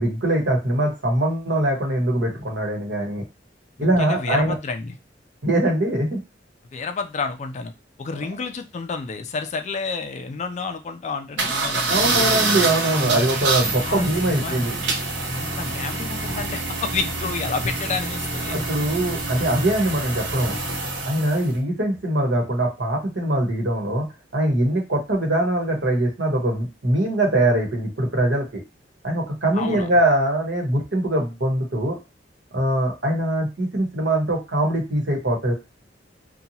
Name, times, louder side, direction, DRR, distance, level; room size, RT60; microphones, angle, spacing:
voice 1, 0.0-3.2 3.8-4.6 5.4-6.2 8.2-8.3 11.9-14.8 18.5-20.5 21.1-24.1 24.3-28.6 29.0-32.0 32.5-35.5, right 1 dB, 70° right, 1 dB, 1.1 m, -22 dB
voice 2, 3.8-5.0 6.7-7.7 8.0-12.0 13.8-14.7 15.2-18.5 29.5-29.9, left 4 dB, 40° left, 7 dB, 0.4 m, -30 dB
sound 1, 11.4-21.5, right 3 dB, 85° right, 0.7 m, -26 dB
2.8 x 2.2 x 2.7 m, 0.25 s
head